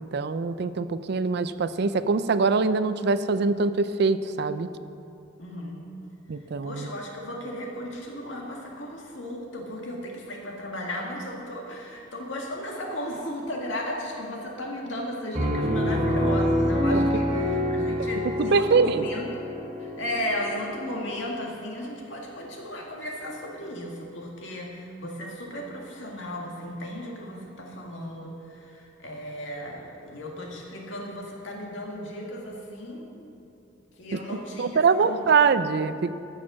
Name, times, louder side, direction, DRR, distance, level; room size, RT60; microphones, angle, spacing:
voice 1, 0.0-4.7 6.3-6.9 16.9-17.0 18.4-19.1 34.1-36.1, right 4 dB, 55° right, 13 dB, 0.4 m, -23 dB
voice 2, 5.4-5.9 6.6-19.3 19.8-33.1 34.0-35.2, left 1 dB, 70° left, -1 dB, 2.0 m, -35 dB
Piano, 15.3-20.9, equal, 35° right, 1.7 m, -26 dB
14.5 x 6.6 x 6.3 m, 2.6 s
head